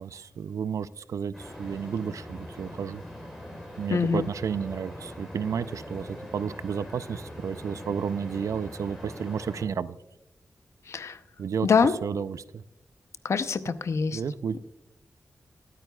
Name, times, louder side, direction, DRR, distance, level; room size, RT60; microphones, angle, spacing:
voice 1, 0.0-3.0 3.8-10.0 11.4-11.7 12.0-12.6 14.1-14.6, right 7 dB, 80° right, 15 dB, 0.4 m, -32 dB
sound 1, 1.3-9.7, equal, ahead, 3.7 m, -42 dB
voice 2, 3.9-4.3 10.9-11.2 11.6-12.0 13.2-14.2, left 5 dB, 60° left, 12 dB, 0.6 m, -24 dB
21.5 x 9.2 x 2.3 m, 0.92 s
wide cardioid pair, 135°, 5 cm